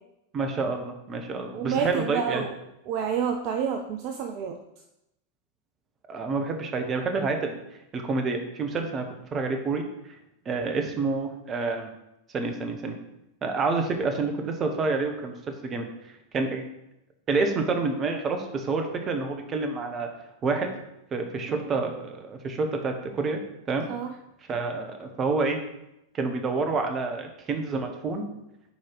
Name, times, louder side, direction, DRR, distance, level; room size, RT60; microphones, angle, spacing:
voice 1, 0.3-2.4 6.1-7.6 7.9-9.0 9.3-9.8 10.4-11.9 12.3-13.0 13.4-15.9 16.3-16.6 17.3-20.1 20.4-20.7 21.1-23.4 23.7-23.9 24.5-25.6 26.1-28.2, right 3 dB, 25° right, 5 dB, 1.0 m, -28 dB
voice 2, 1.5-2.5 2.9-4.6 21.5-21.7 23.9-24.1, right 7 dB, 45° right, 4 dB, 0.5 m, -29 dB
5.5 x 4.6 x 4.7 m, 0.86 s
figure-of-eight pair, 90°, 0 cm